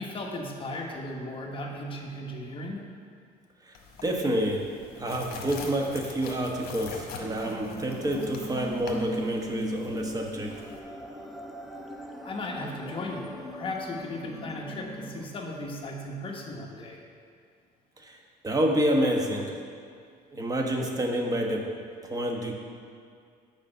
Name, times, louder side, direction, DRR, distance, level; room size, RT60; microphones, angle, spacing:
voice 1, 0.0-2.8 12.2-17.0, left 1 dB, 30° left, -1 dB, 1.2 m, -36 dB
sound 1, 3.7-10.8, left 4 dB, 65° left, 1.2 m, -44 dB
voice 2, 4.0-4.6 5.0-10.5 18.0-18.2 18.4-19.6 20.3-21.6 22.0-22.5, right 1 dB, 20° right, 1 dB, 1.1 m, -28 dB
sound 2, 7.2-15.2, equal, ahead, 0.6 m, -39 dB
6.8 x 4.9 x 6.5 m, 2.2 s
cardioid pair, 110°, 17 cm